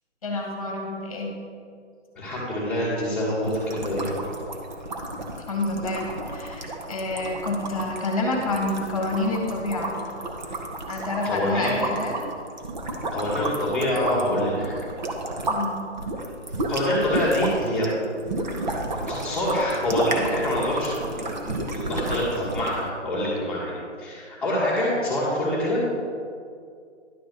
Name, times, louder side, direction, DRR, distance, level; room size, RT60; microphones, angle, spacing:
voice 1, 0.2-1.3 5.5-9.9 10.9-12.2 15.5-15.9, left 2 dB, 30° left, 1 dB, 1.3 m, -28 dB
voice 2, 2.1-4.0 11.2-11.8 13.1-14.7 16.7-17.9 19.0-25.8, left 1 dB, 5° left, -12 dB, 1.4 m, -26 dB
sound 1, 3.4-15.6 15.9-22.8, right 2 dB, 40° right, 1.0 m, -31 dB
11.0 x 4.0 x 6.6 m, 2.3 s
hypercardioid pair, 165°, 36 cm